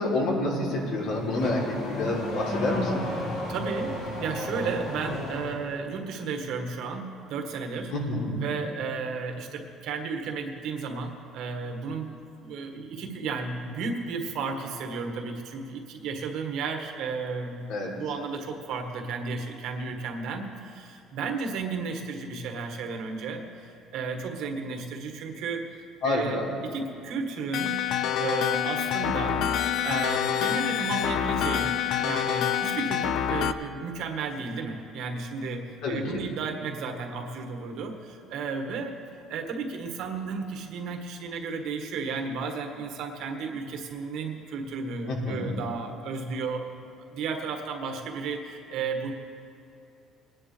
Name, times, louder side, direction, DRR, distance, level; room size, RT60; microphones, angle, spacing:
voice 1, 0.0-3.1 7.9-8.4 17.7-17.9 26.0-26.5 35.8-36.2 45.1-45.5, left 2 dB, 75° left, -3 dB, 3.4 m, -28 dB
Car / Accelerating revving vroom, 0.6-5.7, left 1 dB, 90° left, 3.8 m, -34 dB
voice 2, 3.5-3.9 4.2-7.9 8.3-12.1 12.4-25.6 26.0-27.8 28.2-29.5 29.8-39.0 39.3-46.6 47.1-49.1, right 4 dB, 65° right, 3 dB, 1.6 m, -33 dB
sound 1, 27.5-33.5, left 9 dB, 55° left, 0.5 m, -27 dB
22.0 x 10.5 x 3.4 m, 2.7 s
cardioid pair, 155°, 0 cm